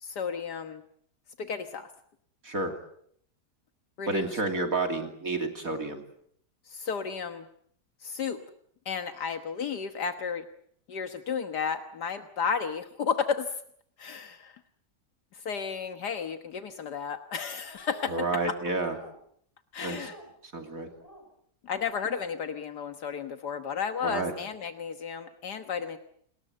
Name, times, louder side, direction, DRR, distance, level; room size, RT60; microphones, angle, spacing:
voice 1, 0.0-0.8 1.4-1.9 4.0-4.3 6.7-7.5 8.0-8.4 8.9-10.5 10.9-13.6 14.0-14.6 15.3-18.1 19.7-20.2 21.6-26.0, left 6 dB, 75° left, 7 dB, 1.9 m, -33 dB
voice 2, 4.1-6.0 18.1-19.0 19.8-20.1 20.5-20.9 24.0-24.3, right 2 dB, 55° right, 4 dB, 3.2 m, -30 dB
sound 1, 17.7-18.2 18.7-19.2 19.8-20.3 20.9-21.3 21.7-22.3, right 1 dB, 10° left, 6.5 m, -50 dB
29.5 x 20.5 x 7.9 m, 0.67 s
omnidirectional pair, 1.8 m